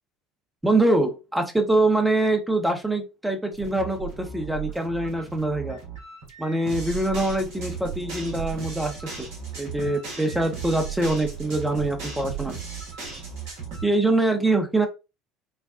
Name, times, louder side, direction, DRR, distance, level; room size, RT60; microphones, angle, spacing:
voice 1, 0.6-5.8 6.4-9.3 9.5-12.5 13.8-14.9, right 2 dB, 10° right, 4 dB, 1.0 m, -24 dB
sound 1, 3.5-13.8, right 6 dB, 55° right, 1.2 m, -36 dB
5.7 x 2.3 x 2.5 m, 0.28 s
figure-of-eight pair, 65°, 0 cm